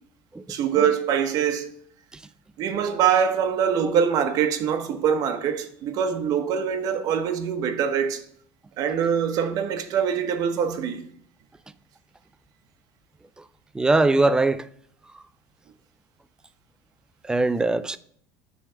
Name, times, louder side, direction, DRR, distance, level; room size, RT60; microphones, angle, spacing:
voice 1, 0.5-1.7 2.6-8.2 8.8-11.0, right 8 dB, 50° right, 0.9 m, -24 dB
voice 2, 13.8-14.6 17.3-18.0, right 2 dB, 10° right, 0.3 m, -20 dB
8.8 x 3.3 x 5.5 m
supercardioid pair, 125°, 8 cm